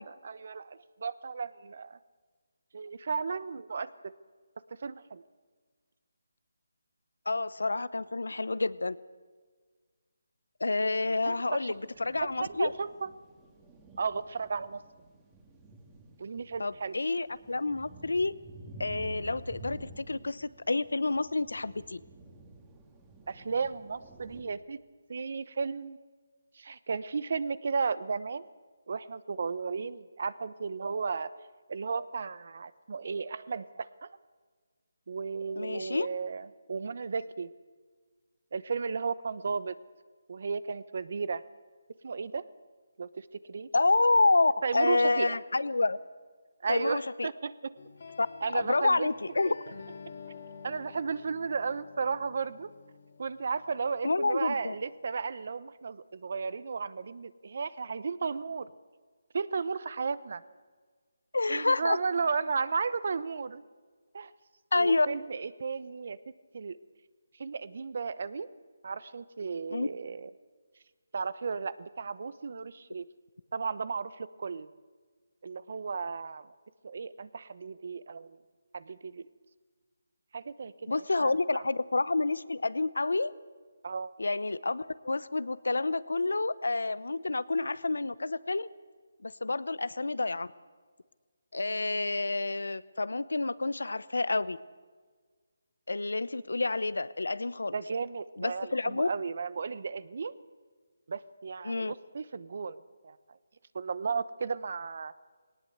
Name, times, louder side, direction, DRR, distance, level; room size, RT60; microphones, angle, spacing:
voice 1, 0.0-2.0 2.7-4.1 4.8-5.2 11.2-11.7 12.2-13.1 14.0-14.8 16.2-16.9 23.3-24.8 25.1-26.0 26.5-28.4 28.9-31.3 31.7-34.2 35.1-37.5 38.5-39.8 40.3-41.4 42.0-42.4 43.0-43.7 44.6-45.4 46.6-47.7 48.4-49.1 49.4-49.5 50.6-52.7 53.2-58.7 59.3-60.4 61.5-63.6 64.1-64.3 64.7-66.2 66.5-66.8 67.4-68.5 68.8-70.3 71.1-73.0 73.5-74.7 75.4-76.5 76.8-78.4 78.7-79.3 80.3-80.9 81.2-81.6 83.8-84.1 97.7-100.3 101.1-103.2 103.7-105.1, right 5 dB, 55° right, 17 dB, 0.9 m, -34 dB
voice 2, 7.3-9.0 10.6-12.7 16.6-18.3 18.8-22.0 35.6-36.1 43.7-46.0 46.7-47.3 48.2-48.3 48.5-49.5 54.0-54.7 61.3-62.0 64.7-65.1 69.7-69.9 80.9-83.3 84.2-88.7 89.2-90.5 91.5-94.6 95.9-97.7 98.4-99.1 101.6-101.9, left 3 dB, 85° left, 18 dB, 0.8 m, -28 dB
sound 1, 11.0-24.4, right 2 dB, 15° right, 2.3 m, -51 dB
sound 2, 47.8-54.8, left 5 dB, 60° left, 2.8 m, -49 dB
19.0 x 18.5 x 8.0 m, 1.5 s
figure-of-eight pair, 160°, 0 cm